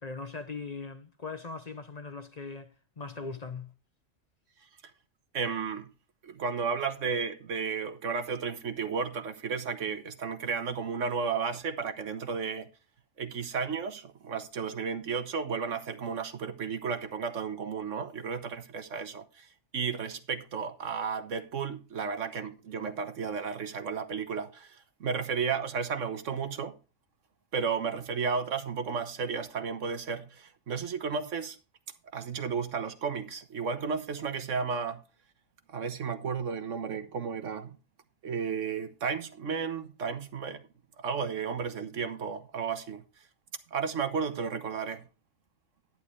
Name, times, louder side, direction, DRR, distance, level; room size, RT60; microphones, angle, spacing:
voice 1, 0.0-3.7, left 4 dB, 35° left, 0.8 m, -40 dB
voice 2, 5.3-5.9 6.2-12.7 13.2-19.5 19.7-26.7 27.5-31.6 32.1-35.0 35.7-37.8 38.2-40.6 41.0-43.0 43.7-45.0, right 5 dB, 80° right, 1.5 m, -33 dB
11.0 x 9.9 x 3.2 m
omnidirectional pair, 1.3 m